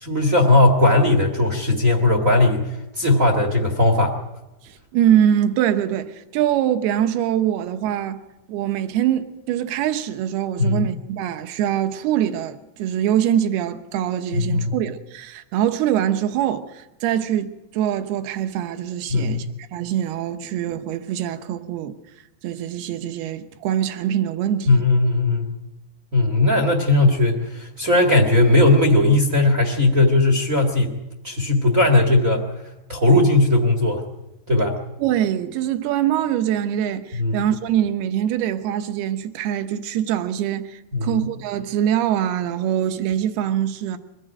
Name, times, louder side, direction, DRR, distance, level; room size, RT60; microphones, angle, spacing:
voice 1, 0.0-2.7 3.0-4.1 10.6-10.9 14.4-14.7 19.1-19.4 24.7-25.5 26.1-30.9 31.2-32.4 32.9-34.0 34.5-34.8 37.2-37.4 40.9-41.1, left 2 dB, 40° right, 1.2 m, -17 dB
voice 2, 4.6-8.2 8.5-22.0 22.4-24.8 35.0-44.0, right 10 dB, 75° right, 3.0 m, -23 dB
23.0 x 14.5 x 9.0 m
omnidirectional pair, 4.7 m